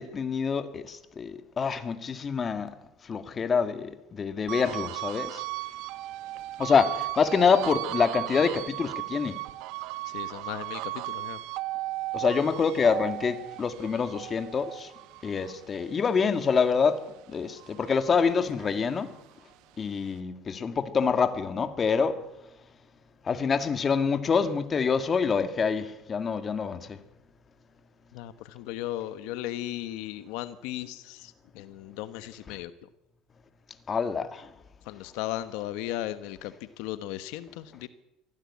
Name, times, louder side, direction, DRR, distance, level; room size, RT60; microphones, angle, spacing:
voice 1, 0.0-2.7 3.0-5.4 6.6-9.4 12.1-14.9 15.2-17.0 17.3-19.1 19.8-22.2 23.2-27.0 32.5-32.6 33.9-34.5, left 5 dB, 30° left, 1.9 m, -26 dB
sound 1, 4.5-17.1 17.5-19.2, right 18 dB, 75° right, 0.9 m, -36 dB
voice 2, 10.1-11.4 28.1-32.7 34.9-37.9, left 14 dB, 80° left, 1.1 m, -36 dB
23.5 x 16.0 x 8.5 m
cardioid pair, 125°, 0 cm